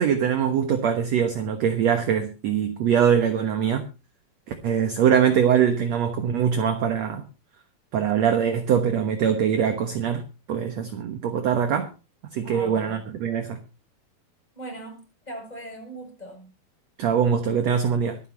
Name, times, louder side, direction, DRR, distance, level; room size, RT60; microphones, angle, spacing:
voice 1, 0.0-3.9 4.5-7.2 7.9-11.9 12.3-13.6 17.0-18.2, right 8 dB, 60° right, 2.0 m, -23 dB
voice 2, 12.4-13.0 14.5-16.5, right 1 dB, 10° left, 7.3 m, -39 dB
24.0 x 9.3 x 3.0 m
omnidirectional pair, 4.3 m